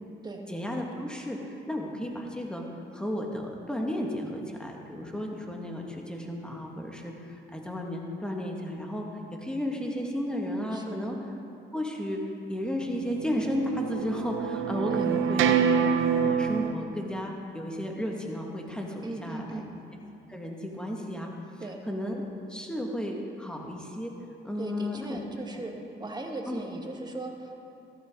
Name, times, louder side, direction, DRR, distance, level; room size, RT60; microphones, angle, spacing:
voice 1, 0.5-2.6 2.9-11.2 11.7-12.2 12.5-19.6 20.3-21.3 21.9-22.2 22.5-24.1 24.4-25.2 26.5-26.6, equal, 5° left, 0 dB, 2.0 m, -33 dB
voice 2, 10.7-11.1 14.9-15.1 19.0-19.7 21.6-21.8 24.6-25.7 26.0-27.5, right 2 dB, 20° right, 2 dB, 1.6 m, -38 dB
sound 1, 13.1-16.7, right 7 dB, 90° right, 0.7 m, -26 dB
14.0 x 13.5 x 3.9 m, 2.7 s
cardioid pair, 90°, 20 cm